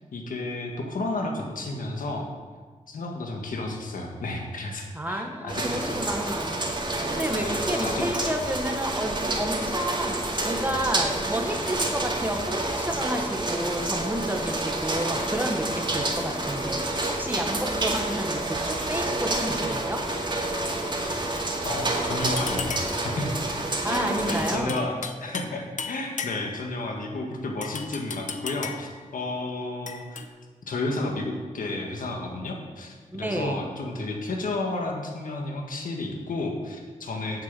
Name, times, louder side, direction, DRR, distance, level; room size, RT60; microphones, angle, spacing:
voice 1, 0.1-2.3 2.9-6.1 7.4-8.0 21.6-23.3 23.9-30.3 30.7-37.4, left 2 dB, 85° left, 1 dB, 1.8 m, -32 dB
voice 2, 4.9-6.6 7.1-10.2 10.4-20.0 23.8-24.9 33.1-33.6, right 1 dB, 15° right, 2 dB, 1.4 m, -30 dB
sound 1, 5.5-24.6, right 2 dB, 35° right, 2.2 m, -28 dB
Brass Headboard, 22.2-23.0 23.9-25.5 25.8-26.7 27.6-28.9 29.9-30.3, left 5 dB, 65° left, 0.9 m, -35 dB
9.0 x 7.6 x 7.5 m, 1.5 s
cardioid pair, 70°, 14 cm